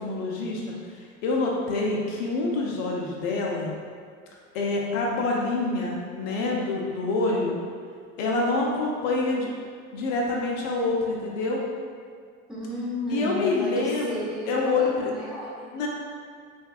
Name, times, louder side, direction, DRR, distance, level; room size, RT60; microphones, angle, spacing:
voice 1, 0.0-3.7 4.5-7.6 8.2-9.5 9.9-11.6 13.1-15.1 15.7-15.9, left 3 dB, 65° left, -2 dB, 0.8 m, -26 dB
voice 2, 12.5-15.7, left 1 dB, ahead, -7 dB, 0.7 m, -33 dB
3.3 x 2.6 x 2.3 m, 2.1 s
hypercardioid pair, 95°, 41 cm